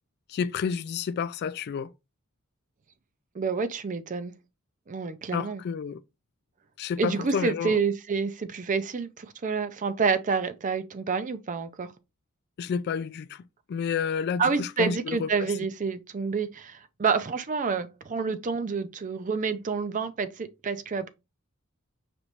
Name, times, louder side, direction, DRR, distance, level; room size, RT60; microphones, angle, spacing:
voice 1, 0.3-1.9 5.3-6.0 6.8-7.8 12.6-15.5, left 6 dB, 50° left, 0.3 m, -30 dB
voice 2, 3.3-4.3 4.9-5.6 7.0-11.9 14.4-21.1, right 5 dB, 35° right, 0.5 m, -28 dB
5.1 x 3.1 x 2.9 m
head